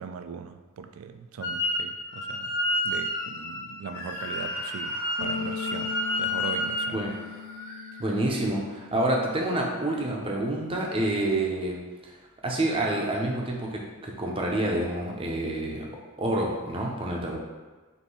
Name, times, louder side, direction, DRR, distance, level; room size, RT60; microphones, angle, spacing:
voice 1, 0.0-2.6 2.8-7.1, right 6 dB, 65° right, 9 dB, 0.3 m, -39 dB
Wind instrument woodwind instrument, 1.4-1.8 2.1-6.9, left 1 dB, 50° left, 0.8 m, -30 dB
Screaming, 3.9-8.8, left 2 dB, 70° left, 1.5 m, -42 dB
Bass guitar, 5.2-11.4, left 7 dB, 85° left, 0.5 m, -40 dB
voice 2, 8.0-11.8 12.4-15.9 16.2-17.4, right 1 dB, 25° right, -1 dB, 0.6 m, -28 dB
5.3 x 2.7 x 3.1 m, 1.3 s
head